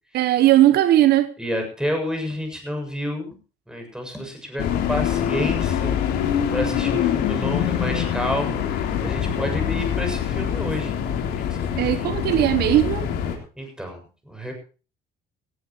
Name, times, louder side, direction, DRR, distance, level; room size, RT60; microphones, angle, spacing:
voice 1, 0.1-1.3 11.8-13.1, right 14 dB, 75° right, 1.1 m, -18 dB
voice 2, 1.4-3.3 3.7-11.0 11.4-12.0 13.6-14.0 14.3-14.5, equal, 5° right, 7.2 m, -30 dB
sound 1, 4.6-13.4, left 9 dB, 85° left, 3.7 m, -24 dB
18.5 x 16.0 x 3.0 m
cardioid pair, 110°, 17 cm